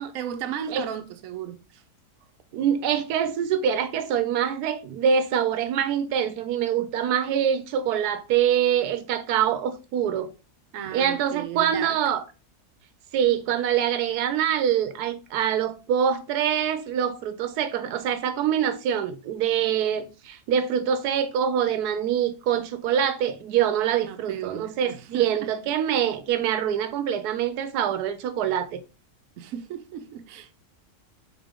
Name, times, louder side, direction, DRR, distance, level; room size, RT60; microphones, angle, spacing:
voice 1, 0.0-1.8 10.7-12.0 24.0-25.5 29.4-30.5, right 9 dB, 70° right, 1.0 m, -35 dB
voice 2, 2.5-10.3 10.9-12.2 13.1-28.8, right 9 dB, 90° right, 1.2 m, -25 dB
4.0 x 3.6 x 3.5 m
omnidirectional pair, 1.6 m